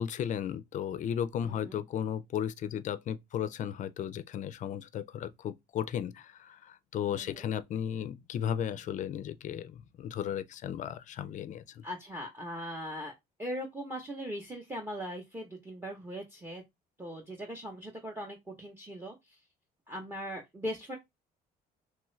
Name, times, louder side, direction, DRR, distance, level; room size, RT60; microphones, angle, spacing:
voice 1, 0.0-11.8, left 9 dB, 45° left, 0.4 m, -35 dB
voice 2, 1.4-1.8 7.1-7.5 11.8-13.1 13.4-16.6 17.0-19.1 19.9-21.0, equal, 15° right, 0.7 m, -40 dB
3.1 x 2.3 x 3.1 m
cardioid pair, 110°, 17 cm